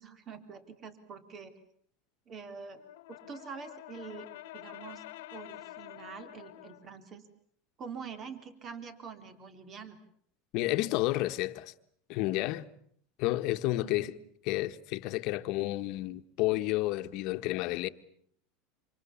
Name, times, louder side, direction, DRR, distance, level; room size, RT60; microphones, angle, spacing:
voice 1, 0.0-1.6 2.3-2.8 3.1-5.0 5.3-7.2 7.8-10.0 13.8-14.1, right 6 dB, 35° right, 3.4 m, -45 dB
Brass instrument, 2.8-6.9, left 16 dB, 80° left, 1.5 m, -48 dB
voice 2, 10.5-11.7 12.1-12.7 13.2-14.1 14.4-17.9, left 17 dB, 55° left, 1.4 m, -31 dB
28.0 x 27.0 x 7.2 m
supercardioid pair, 125°, 0 cm